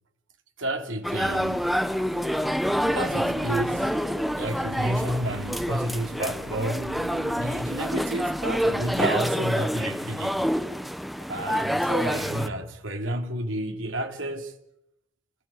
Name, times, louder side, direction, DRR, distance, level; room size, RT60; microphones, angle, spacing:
voice 1, 0.6-1.7 2.8-4.0 4.4-7.0 7.3-10.6 11.3-14.5, right 1 dB, 70° right, 2.9 m, -31 dB
sound 1, 1.0-12.5, equal, ahead, 1.0 m, -27 dB
sound 2, 1.2-9.0, right 1 dB, 45° right, 3.3 m, -42 dB
28.5 x 15.5 x 8.5 m
head